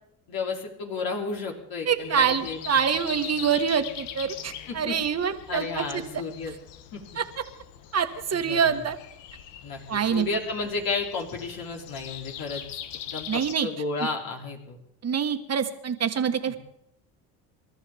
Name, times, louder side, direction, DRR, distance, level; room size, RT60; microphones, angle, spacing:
voice 1, 0.3-2.8 4.7-5.0 5.5-6.5 6.9-7.0 8.3-8.8 9.6-12.6 13.1-14.8 16.5-16.6, left 4 dB, 55° left, 0 dB, 3.3 m, -32 dB
voice 2, 1.9-6.1 7.2-7.3 7.9-9.0 9.9-10.3 13.3-13.7 15.0-16.6, right 7 dB, 35° right, 7 dB, 1.7 m, -25 dB
Breathing, 2.0-13.5, left 10 dB, 80° left, 1.5 m, -42 dB
28.5 x 13.0 x 3.6 m, 0.79 s
supercardioid pair, 85°, 41 cm